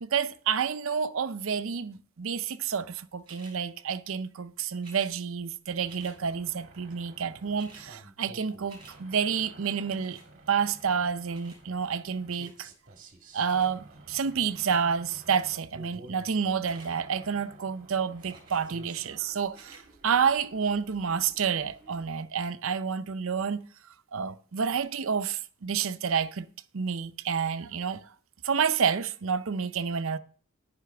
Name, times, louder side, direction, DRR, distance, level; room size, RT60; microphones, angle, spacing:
voice 1, 0.0-10.2 10.5-12.7 13.3-23.7 24.1-26.5 26.7-28.0 28.4-30.2, right 6 dB, 65° right, 0.6 m, -29 dB
sound 1, 3.2-3.6 4.8-5.1 5.9-6.2 7.1-7.2 7.4-7.9 8.3-9.0 10.0-10.3 11.3-11.6 12.3-12.6 13.4-13.7 14.3-14.8 16.5-16.9 18.3-18.7 19.5-19.8 20.5-20.6, right 3 dB, 20° right, 3.8 m, -52 dB
sound 2, 5.7-22.1, right 2 dB, 35° right, 1.6 m, -52 dB
10.5 x 9.8 x 3.4 m
head